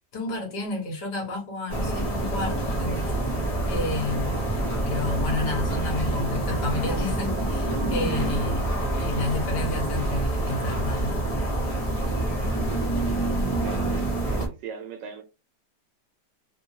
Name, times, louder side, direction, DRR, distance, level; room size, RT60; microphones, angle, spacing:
voice 1, 0.1-3.1 3.7-4.4 4.8-8.7 9.0-11.2, left 2 dB, 70° left, 1.7 m, -31 dB
sound 1, 1.7-14.5, right 1 dB, 25° left, 0.8 m, -27 dB
voice 2, 13.6-13.9 14.2-15.2, right 6 dB, 80° right, 1.3 m, -39 dB
3.4 x 2.2 x 2.7 m
omnidirectional pair, 1.9 m